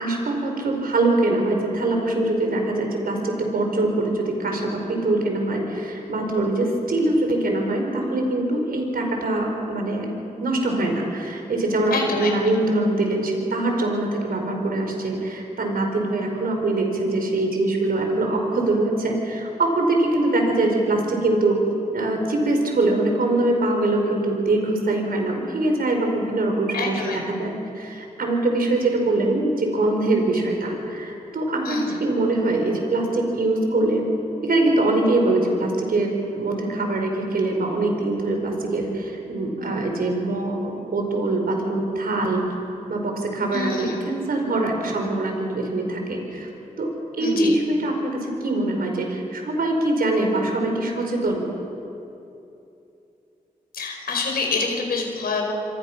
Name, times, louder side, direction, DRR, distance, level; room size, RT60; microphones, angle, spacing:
voice 1, 0.0-10.1 10.4-21.6 21.9-34.0 34.4-42.4 42.9-46.5 46.8-46.9 47.2-51.5, right 2 dB, 75° right, 2 dB, 4.7 m, -23 dB
voice 2, 11.9-12.3 26.7-27.2 31.6-32.0 43.5-44.0 47.2-47.5 53.7-55.5, left 4 dB, 90° left, 1 dB, 5.0 m, -26 dB
27.0 x 25.0 x 6.0 m, 2.8 s
cardioid pair, 50°, 15 cm